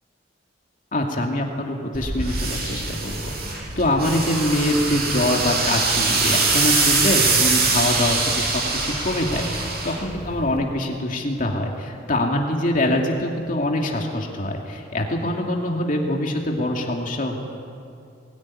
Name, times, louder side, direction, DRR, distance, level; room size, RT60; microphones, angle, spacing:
voice 1, 0.9-3.3 3.8-17.4, left 1 dB, 45° left, 1 dB, 2.5 m, -24 dB
sound 1, 1.9-10.6, right 3 dB, 55° right, 6.0 m, -23 dB
21.0 x 19.0 x 9.9 m, 2.4 s
head